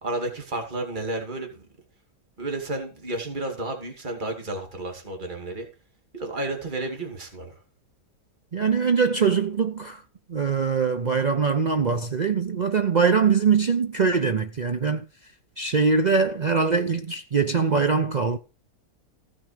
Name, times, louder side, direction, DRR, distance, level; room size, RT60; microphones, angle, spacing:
voice 1, 0.0-1.6 2.4-5.7 6.1-7.5, right 2 dB, 30° right, 2.7 m, -31 dB
voice 2, 8.5-10.0 10.3-15.1 15.6-18.4, right 5 dB, 75° right, 0.4 m, -22 dB
16.0 x 6.1 x 5.0 m
omnidirectional pair, 1.8 m